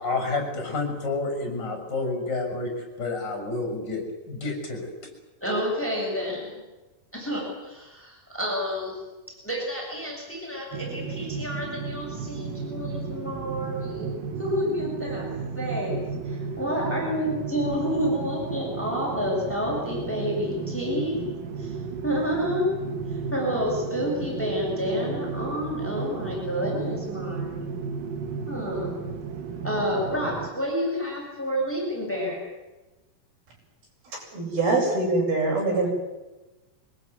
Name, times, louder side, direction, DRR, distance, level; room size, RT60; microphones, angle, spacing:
voice 1, 0.0-2.7 3.0-4.9, left 3 dB, 30° left, 3 dB, 6.9 m, -29 dB
voice 2, 5.4-6.6 7.1-9.0 9.4-14.1 14.4-15.3 15.5-21.2 21.6-21.7 22.0-22.7 23.1-27.8 28.5-28.9 29.6-32.4, equal, 5° left, -2 dB, 7.2 m, -29 dB
sound 1, 10.7-30.5, right 5 dB, 70° right, 3.2 m, -34 dB
voice 3, 34.1-35.9, right 3 dB, 90° right, -1 dB, 9.8 m, -24 dB
24.5 x 20.0 x 9.5 m, 1.1 s
omnidirectional pair, 4.2 m